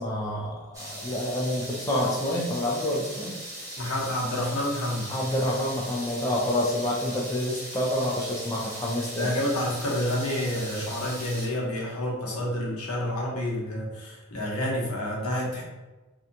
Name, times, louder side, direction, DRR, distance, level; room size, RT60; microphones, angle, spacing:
voice 1, 0.0-3.3 5.1-9.3, left 1 dB, 15° left, -4 dB, 0.3 m, -28 dB
sound 1, 0.7-11.5, equal, 15° right, 0.8 m, -39 dB
voice 2, 3.8-5.1 9.2-15.6, left 1 dB, 85° left, -3 dB, 0.8 m, -29 dB
2.7 x 2.2 x 2.5 m, 1.1 s
head